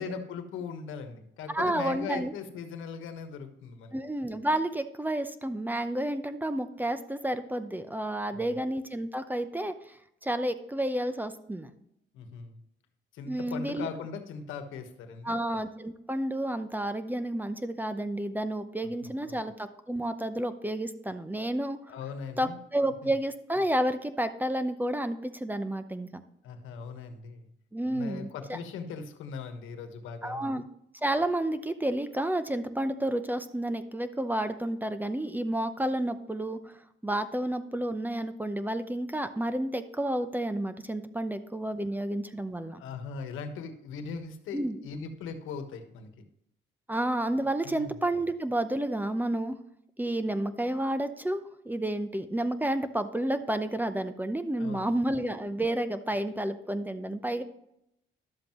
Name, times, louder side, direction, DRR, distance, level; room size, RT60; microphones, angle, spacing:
voice 1, 0.0-3.9 8.3-8.6 12.1-12.6 13.1-15.4 19.0-19.4 21.9-22.6 23.0-23.1 26.4-27.5 27.9-30.6 42.7-46.2 47.6-47.9 54.5-54.9, left 5 dB, 90° left, 7 dB, 1.3 m, -40 dB
voice 2, 1.5-2.3 3.9-11.7 13.3-13.9 15.2-21.8 22.4-26.2 27.7-28.6 30.2-30.6 31.0-42.8 44.5-44.8 46.9-49.6 50.0-57.4, right 1 dB, 10° right, 10 dB, 0.7 m, -30 dB
11.5 x 7.5 x 3.0 m, 0.78 s
cardioid pair, 90°, 20 cm